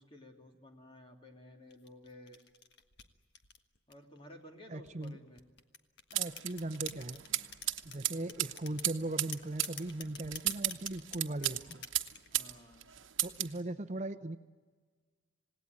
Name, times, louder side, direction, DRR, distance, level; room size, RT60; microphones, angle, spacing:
voice 1, 0.0-2.4 3.9-5.4 12.3-12.9, left 1 dB, 25° left, 2 dB, 3.1 m, -54 dB
sound 1, 1.7-4.2 4.9-8.0 8.3-8.9 9.3-12.3, left 7 dB, 55° left, 1.6 m, -47 dB
voice 2, 4.7-5.2 6.1-7.2 7.8-11.9 13.2-14.4, right 2 dB, 35° right, 8 dB, 0.8 m, -39 dB
sound 2, 6.1-12.5 12.8-13.6, right 14 dB, 75° right, 1.1 m, -35 dB
27.5 x 18.5 x 9.6 m, 1.5 s
head